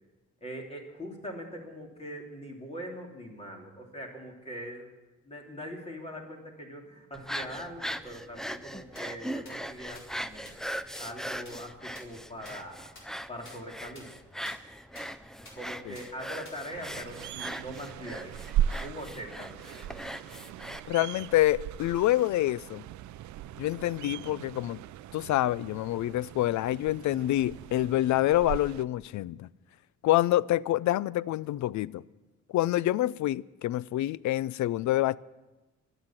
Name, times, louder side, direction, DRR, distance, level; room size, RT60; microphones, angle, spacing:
voice 1, 0.4-4.9 5.2-12.9 13.3-14.1 15.5-18.4 18.8-19.9, equal, 20° left, 3.1 m, -42 dB
sound 1, 7.1-20.8, equal, ahead, 0.4 m, -40 dB
sound 2, 9.0-9.1 9.5-9.6 10.0-10.1 10.5-10.6 11.0-11.1 11.5-11.6 12.0-12.1 12.5-12.6 13.0-13.1 13.5-13.6 14.0-14.1 14.5-14.6 15.0-15.1 15.5-15.6 16.0-16.1 16.5-16.6, left 2 dB, 45° left, 4.4 m, -48 dB
sound 3, 16.7-28.8, right 11 dB, 70° right, 0.5 m, -38 dB
voice 2, 20.9-22.8 23.6-24.8 25.1-29.5 30.0-32.0 32.5-35.2, left 14 dB, 70° left, 0.5 m, -27 dB
23.5 x 8.1 x 7.4 m
cardioid pair, 140°, 30 cm